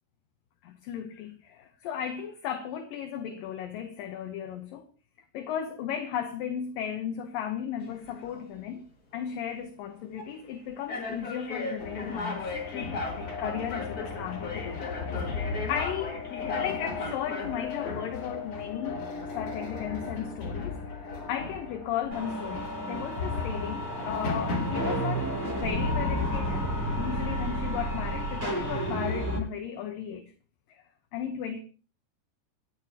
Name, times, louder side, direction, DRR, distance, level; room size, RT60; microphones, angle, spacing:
voice 1, 0.6-4.8 5.3-8.9 9.1-16.2 16.5-19.0 19.3-26.7 27.0-30.3 30.7-30.8 31.1-31.6, left 9 dB, 70° left, 2.6 m, -35 dB
sound 1, 7.8-8.4 9.1-9.3 10.2-10.3 10.9-18.2, left 3 dB, 30° left, 1.9 m, -37 dB
sound 2, 11.8-25.0, left 4 dB, 45° left, 3.7 m, -36 dB
sound 3, 22.1-29.4, equal, 30° right, 8.8 m, -31 dB
26.5 x 10.0 x 2.9 m
omnidirectional pair, 4.3 m